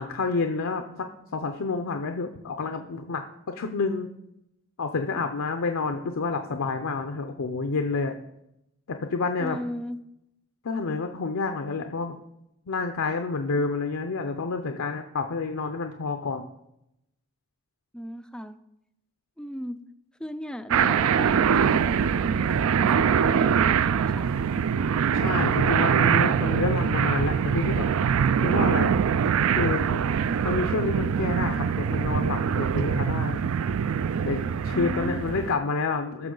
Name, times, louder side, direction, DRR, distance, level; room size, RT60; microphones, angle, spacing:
voice 1, 0.0-3.2 3.5-4.1 4.8-8.2 8.9-9.6 10.6-12.1 12.7-16.5 25.1-27.9 28.4-28.9 29.6-30.0 30.4-33.4 34.2-36.3, left 4 dB, 75° left, 5 dB, 0.6 m, -29 dB
voice 2, 9.4-10.0 17.9-18.6 19.4-19.8 20.2-24.3 34.7-35.2, equal, 5° left, 10 dB, 0.3 m, -36 dB
sound 1, 20.7-35.5, right 7 dB, 70° right, 0.3 m, -23 dB
14.5 x 6.1 x 3.8 m, 0.85 s
head